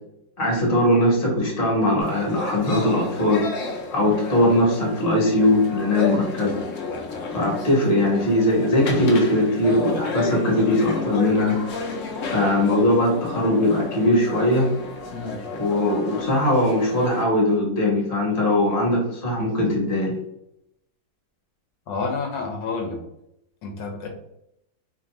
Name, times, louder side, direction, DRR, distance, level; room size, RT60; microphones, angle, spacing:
voice 1, 0.4-3.5 3.9-6.6 7.3-11.6 12.3-14.7 15.5-20.2, left 1 dB, 35° left, -1 dB, 1.1 m, -20 dB
sound 1, 2.0-17.2, left 3 dB, 65° left, 0.8 m, -32 dB
voice 2, 21.9-23.0 23.6-24.1, left 4 dB, 80° left, 2 dB, 1.3 m, -29 dB
2.9 x 2.6 x 4.0 m, 0.80 s
omnidirectional pair, 2.0 m